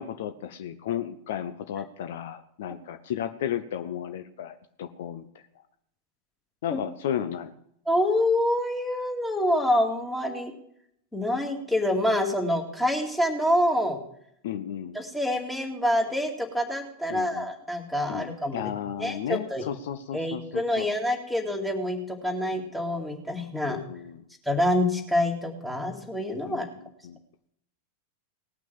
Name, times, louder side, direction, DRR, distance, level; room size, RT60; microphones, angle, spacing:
voice 1, 0.0-5.4 6.6-7.5 14.4-15.0 17.1-17.5 18.1-20.9 23.7-24.2 26.4-27.2, left 10 dB, 55° left, 11 dB, 0.6 m, -34 dB
voice 2, 7.9-10.5 11.1-14.0 14.9-18.7 19.0-19.7 20.1-23.8 24.5-26.7, left 1 dB, 5° left, 2 dB, 2.3 m, -26 dB
18.5 x 6.1 x 7.5 m, 0.72 s
figure-of-eight pair, 90°, 0 cm